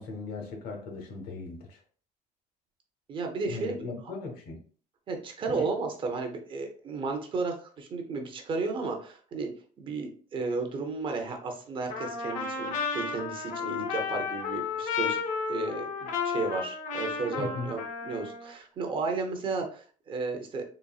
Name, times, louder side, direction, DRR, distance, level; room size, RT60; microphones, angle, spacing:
voice 1, 0.0-1.8 3.4-4.6 5.5-5.6 17.4-17.7, left 3 dB, 70° left, 3 dB, 1.2 m, -38 dB
voice 2, 3.1-3.7 5.1-9.5 9.8-15.2 15.5-20.6, right 3 dB, 30° right, 4 dB, 0.7 m, -33 dB
Trumpet, 11.9-18.5, left 5 dB, 50° left, 0.8 m, -33 dB
4.0 x 3.3 x 2.3 m, 0.42 s
cardioid pair, 165°, 16 cm